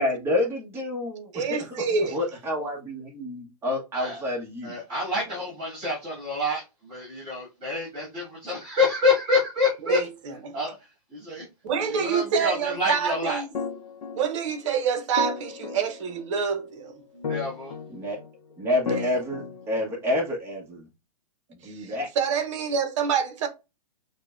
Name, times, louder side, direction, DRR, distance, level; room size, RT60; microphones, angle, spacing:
voice 1, 0.0-1.8 2.1-4.8 17.9-18.2 18.6-20.9 21.6-22.1, left 1 dB, 10° right, 1.1 m, -28 dB
voice 2, 1.3-2.2 9.8-10.6 11.6-13.5 14.1-16.9 21.7-23.5, right 6 dB, 50° right, 0.9 m, -27 dB
voice 3, 4.6-10.0 10.5-10.7 11.1-11.4 11.8-13.4 17.1-17.7, left 3 dB, 30° right, 2.5 m, -27 dB
sound 1, 11.9-12.5 13.5-14.6 15.2-16.6 17.2-18.3 18.9-19.9, left 5 dB, 90° left, 0.7 m, -35 dB
6.4 x 2.3 x 2.4 m
hypercardioid pair, 145°, 20 cm